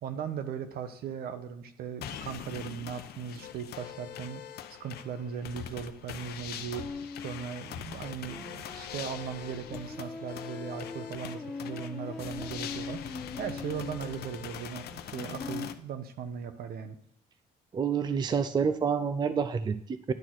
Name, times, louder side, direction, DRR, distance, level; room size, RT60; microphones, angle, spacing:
voice 1, 0.0-4.4 4.7-6.9 7.2-13.0 13.4-17.0, right 7 dB, 65° right, 9 dB, 1.0 m, -38 dB
sound 1, 2.0-15.7, left 10 dB, 70° left, 0.7 m, -43 dB
sound 2, 6.8-15.7, left 3 dB, 5° left, 1.1 m, -42 dB
voice 2, 17.7-20.1, right 6 dB, 25° right, 12 dB, 0.5 m, -28 dB
10.5 x 4.2 x 6.1 m, 0.67 s
cardioid pair, 110°, 17 cm